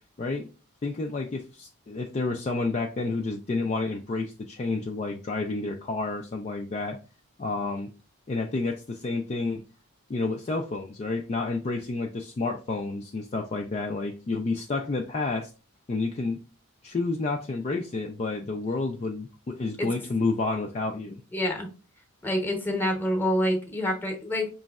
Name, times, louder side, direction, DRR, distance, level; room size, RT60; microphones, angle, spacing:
voice 1, 0.8-7.0 7.4-7.9 8.3-9.6 10.1-15.5 15.9-16.4 16.8-21.2, left 3 dB, 30° left, 2 dB, 0.3 m, -30 dB
voice 2, 21.3-21.7 22.2-24.5, equal, 10° left, 3 dB, 0.8 m, -27 dB
5.2 x 3.0 x 2.3 m, 0.34 s
head